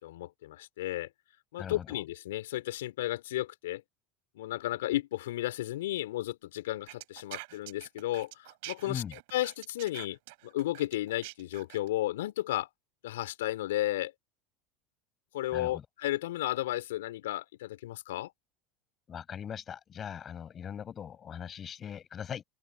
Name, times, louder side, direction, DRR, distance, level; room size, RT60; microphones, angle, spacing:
voice 1, 0.0-1.1 1.5-3.8 4.4-12.7 13.0-14.1 15.3-18.3, left 15 dB, 75° left, 4.0 m, -33 dB
sound 1, 6.9-11.9, right 25 dB, 65° right, 3.5 m, -45 dB
voice 2, 15.5-15.8 19.1-22.4, left 8 dB, 35° left, 5.8 m, -40 dB
open air
hypercardioid pair, 80°, 0 cm